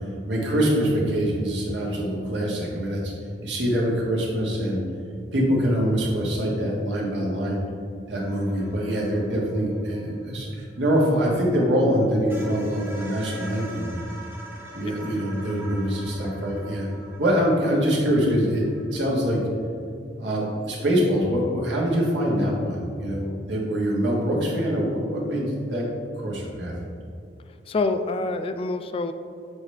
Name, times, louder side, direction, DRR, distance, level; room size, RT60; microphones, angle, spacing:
voice 1, 0.3-3.1 3.4-4.8 5.3-7.6 8.1-13.9 14.7-16.9 17.2-18.6 18.9-19.4 20.2-25.8 26.2-26.7, equal, 85° right, -3 dB, 1.5 m, -24 dB
sound 1, 8.2-11.6 11.9-12.0 12.3-19.0, right 2 dB, 10° right, 0.9 m, -44 dB
voice 2, 27.5-29.1, left 3 dB, 30° left, 9 dB, 0.3 m, -27 dB
7.1 x 4.8 x 3.3 m, 2.5 s
head